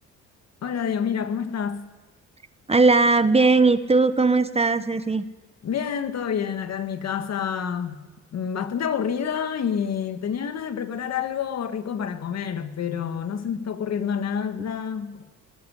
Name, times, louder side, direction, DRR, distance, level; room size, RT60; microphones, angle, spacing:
voice 1, 0.6-1.9 5.6-8.0 8.3-15.2, left 7 dB, 60° left, 1.7 m, -28 dB
voice 2, 2.7-5.3, right 3 dB, 20° right, 1.0 m, -19 dB
19.0 x 15.5 x 9.9 m
cardioid pair, 90°, 30 cm